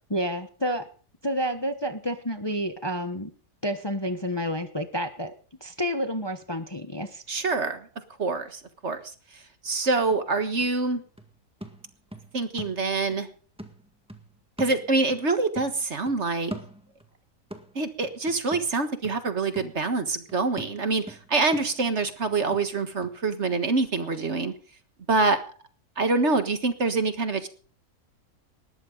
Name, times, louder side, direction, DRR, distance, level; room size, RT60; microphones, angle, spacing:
voice 1, 0.1-0.8 1.2-3.3 3.6-5.3 5.6-7.2, equal, 20° left, 8 dB, 1.1 m, -29 dB
voice 2, 7.3-7.8 8.2-9.0 9.6-11.0 12.3-13.3 14.6-16.5 17.8-24.5 25.1-25.4 26.0-27.5, right 3 dB, 50° right, 8 dB, 1.8 m, -25 dB
sound 1, 9.6-9.7 10.1-13.3 13.6-15.3 15.5-17.2 17.5-23.2 23.5-23.6, right 1 dB, 5° right, 1.7 m, -43 dB
19.5 x 14.0 x 3.9 m, 0.41 s
omnidirectional pair, 1.6 m